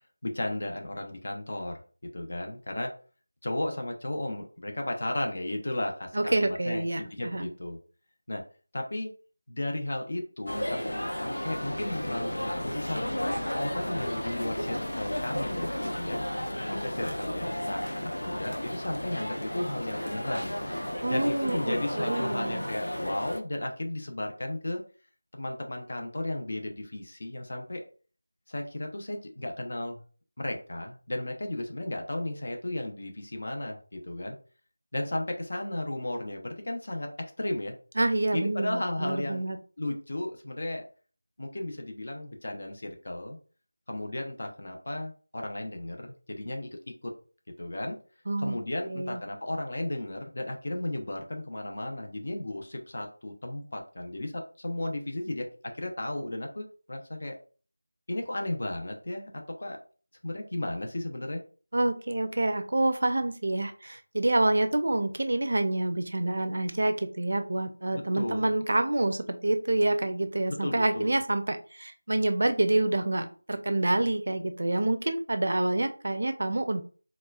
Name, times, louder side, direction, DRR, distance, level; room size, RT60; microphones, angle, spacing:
voice 1, 0.2-1.8 2.1-2.9 3.4-7.8 8.3-8.4 8.7-9.1 9.5-15.7 15.9-16.2 16.7-20.5 21.1-24.8 25.3-27.8 28.5-30.0 30.4-34.4 34.9-37.1 37.4-37.8 38.3-39.5 39.8-40.8 41.4-43.4 43.9-46.7 47.0-47.1 47.6-48.0 48.4-57.4 58.1-59.8 60.2-61.4 67.9-68.5 70.5-71.2, left 1 dB, 50° left, 3 dB, 0.8 m, -34 dB
voice 2, 6.1-7.5 21.0-22.6 38.0-39.6 48.3-48.6 48.9-49.2 61.7-76.8, right 2 dB, 55° right, 7 dB, 0.5 m, -27 dB
sound 1, 10.5-23.4, equal, 80° left, 0.6 m, -33 dB
4.1 x 2.3 x 2.3 m, 0.39 s
figure-of-eight pair, 170°, 0 cm